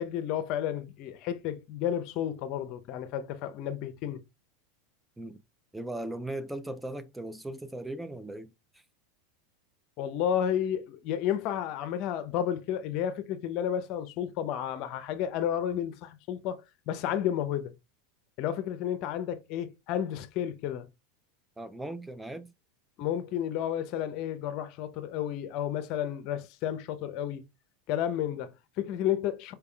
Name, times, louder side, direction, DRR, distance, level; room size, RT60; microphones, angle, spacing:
voice 1, 0.0-4.2 10.0-17.7 18.4-20.9 23.0-27.4 27.9-29.5, left 10 dB, 55° left, 0.6 m, -32 dB
voice 2, 5.7-8.8 21.6-22.5, right 1 dB, 5° right, 0.3 m, -38 dB
4.6 x 3.4 x 2.3 m
hypercardioid pair, 105°, 0 cm